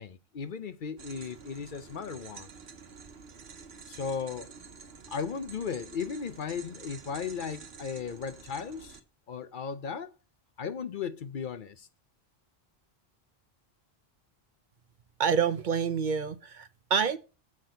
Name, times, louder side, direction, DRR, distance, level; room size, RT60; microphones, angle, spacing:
voice 1, 0.0-2.5 3.9-4.5 5.1-9.0 9.3-10.1 10.6-11.9, left 6 dB, 55° left, 0.8 m, -36 dB
sound 1, 1.0-9.0, right 5 dB, 80° right, 1.2 m, -49 dB
voice 2, 15.2-17.2, right 6 dB, 55° right, 0.7 m, -27 dB
7.5 x 6.0 x 4.9 m
omnidirectional pair, 1.0 m